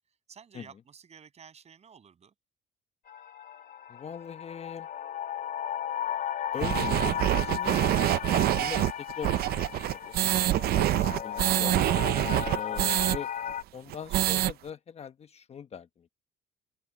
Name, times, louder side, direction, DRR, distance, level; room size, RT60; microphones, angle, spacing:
voice 1, 0.3-2.3, right 7 dB, 40° right, 8.0 m, -52 dB
sound 1, 3.1-13.6, left 10 dB, 55° left, 3.0 m, -35 dB
voice 2, 3.9-4.9 6.5-7.9 8.5-9.7 10.0-10.1 10.4-13.3 13.7-16.1, left 7 dB, 40° left, 1.1 m, -42 dB
sound 2, 6.6-13.2 13.5-13.6 13.9-14.5, right 14 dB, 65° right, 0.7 m, -26 dB
open air
cardioid pair, 110°, 17 cm